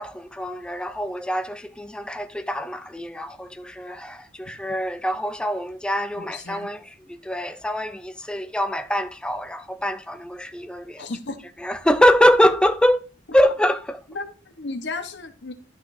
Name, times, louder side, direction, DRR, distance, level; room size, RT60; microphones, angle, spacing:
voice 1, 0.0-11.0 11.6-13.0 13.3-14.0, equal, 5° left, 0.5 m, -23 dB
voice 2, 6.2-6.7 11.0-11.4 14.1-15.5, left 3 dB, 65° left, 1.0 m, -34 dB
12.0 x 5.9 x 2.6 m
head